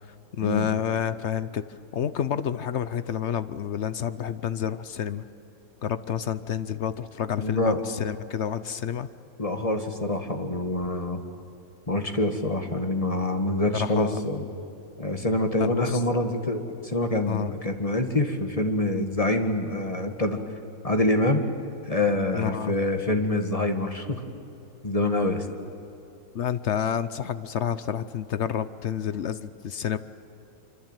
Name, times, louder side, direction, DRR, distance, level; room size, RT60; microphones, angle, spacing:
voice 1, 0.1-5.3 5.8-9.1 13.7-14.2 15.6-16.0 17.3-17.5 22.3-22.8 26.3-30.0, left 9 dB, 65° left, 14 dB, 0.7 m, -29 dB
voice 2, 7.4-7.8 9.4-11.2 11.9-14.4 15.0-20.4 20.8-21.4 21.8-24.2 24.8-25.4, left 1 dB, 20° left, 6 dB, 1.8 m, -26 dB
25.5 x 24.5 x 9.0 m, 2.9 s
omnidirectional pair, 2.0 m